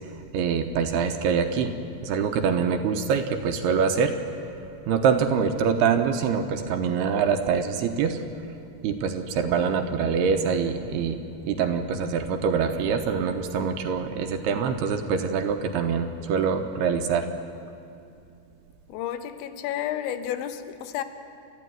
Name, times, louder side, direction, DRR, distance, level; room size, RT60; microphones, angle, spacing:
voice 1, 0.3-1.7 2.0-4.1 4.9-8.2 8.8-17.3, right 6 dB, 75° right, 2.7 m, -24 dB
voice 2, 18.9-21.0, left 11 dB, 85° left, 3.4 m, -31 dB
29.5 x 13.5 x 9.4 m
omnidirectional pair, 5.2 m